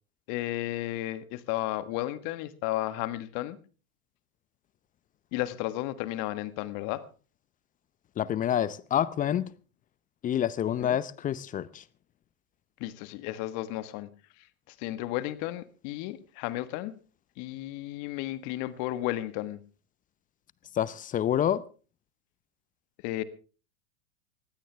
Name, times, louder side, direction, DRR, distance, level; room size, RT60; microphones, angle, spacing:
voice 1, 0.3-3.6 5.3-7.0 10.8-11.0 12.8-14.1 14.8-16.9 17.4-19.6 23.0-23.2, left 15 dB, 45° left, 1.6 m, -33 dB
voice 2, 8.2-9.5 10.2-11.8 20.7-21.6, left 10 dB, 20° left, 0.7 m, -27 dB
19.5 x 16.5 x 3.4 m
hypercardioid pair, 105°, 43 cm